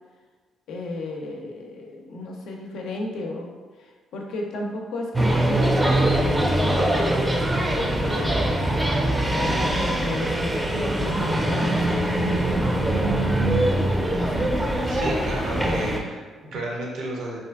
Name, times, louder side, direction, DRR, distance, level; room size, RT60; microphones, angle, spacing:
voice 1, 0.7-8.5 9.0-12.7 14.0-14.5, left 1 dB, 75° left, 0 dB, 0.4 m, -34 dB
sound 1, 5.1-16.0, right 1 dB, 15° right, 0.4 m, -22 dB
voice 2, 14.9-17.4, right 1 dB, 75° right, -2 dB, 0.6 m, -32 dB
2.7 x 2.4 x 2.3 m, 1.4 s
supercardioid pair, 60°, 0 cm